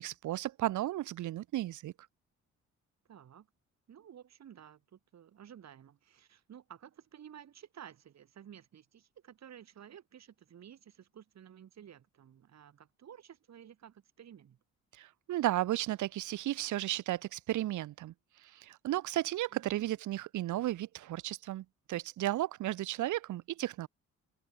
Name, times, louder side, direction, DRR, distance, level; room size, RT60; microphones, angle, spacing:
voice 1, 0.0-1.9 15.0-18.1 18.5-23.9, right 14 dB, 75° right, 1.2 m, -34 dB
voice 2, 3.1-3.5 3.9-14.6 19.5-19.9, right 9 dB, 60° right, 6.8 m, -53 dB
cardioid pair, 90°, 30 cm